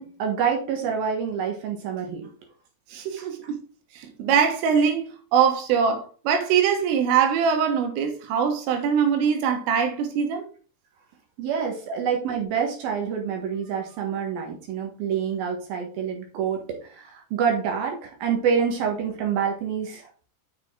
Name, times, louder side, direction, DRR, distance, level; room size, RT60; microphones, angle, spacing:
voice 1, 0.0-2.3 3.2-3.3 11.4-20.1, right 7 dB, 60° right, 2.8 m, -27 dB
voice 2, 2.9-3.6 4.0-10.4 11.9-12.0, right 7 dB, 80° right, 4.0 m, -23 dB
7.2 x 6.6 x 3.7 m
omnidirectional pair, 5.7 m